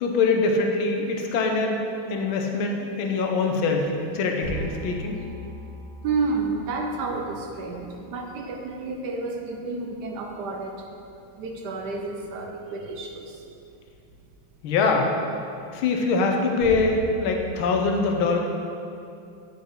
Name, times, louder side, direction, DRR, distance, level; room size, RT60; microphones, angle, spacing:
voice 1, 0.0-1.8 2.1-5.2 14.6-15.1 15.7-18.4, left 4 dB, 75° left, 2 dB, 1.6 m, -23 dB
sound 1, 4.4-8.9 13.9-14.2 16.6-17.2, right 2 dB, 35° left, 1.9 m, -39 dB
voice 2, 6.0-10.8 11.3-13.4, right 3 dB, 65° right, 2 dB, 1.1 m, -30 dB
8.7 x 5.5 x 3.8 m, 2.6 s
omnidirectional pair, 2.3 m